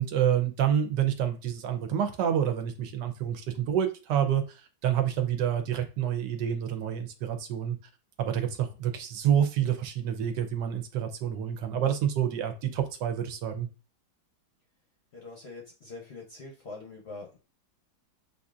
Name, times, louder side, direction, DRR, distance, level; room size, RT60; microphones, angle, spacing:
voice 1, 0.0-4.4 4.8-7.8 8.2-13.7, right 9 dB, 80° right, 6 dB, 1.3 m, -28 dB
voice 2, 15.1-17.4, left 3 dB, 50° left, 0 dB, 0.8 m, -44 dB
6.8 x 2.7 x 2.4 m, 0.33 s
omnidirectional pair, 1.9 m